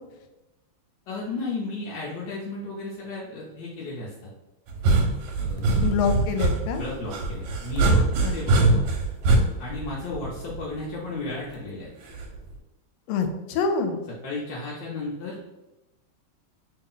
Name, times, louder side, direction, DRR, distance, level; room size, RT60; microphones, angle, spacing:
voice 1, 1.1-4.3 5.4-5.8 6.7-8.8 9.6-11.9 14.2-15.4, left 2 dB, 70° left, -5 dB, 1.2 m, -34 dB
sound 1, 4.7-10.8 12.1-12.5, right 2 dB, 70° right, 1.3 m, -23 dB
voice 2, 5.8-6.8 8.2-8.8 13.1-14.0, left 5 dB, 90° left, 6 dB, 1.5 m, -26 dB
3.2 x 2.8 x 3.7 m, 1.0 s
omnidirectional pair, 2.3 m